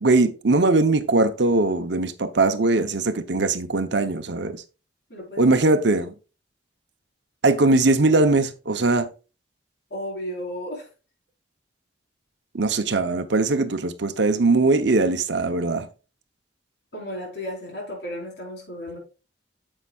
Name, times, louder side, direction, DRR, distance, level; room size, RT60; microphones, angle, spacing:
voice 1, 0.0-4.6 5.4-6.1 7.4-9.1 12.5-15.9, right 3 dB, 65° right, 0.8 m, -20 dB
voice 2, 5.1-5.9 9.9-10.9 16.9-19.0, equal, 60° left, 4.3 m, -34 dB
9.8 x 7.3 x 2.4 m
head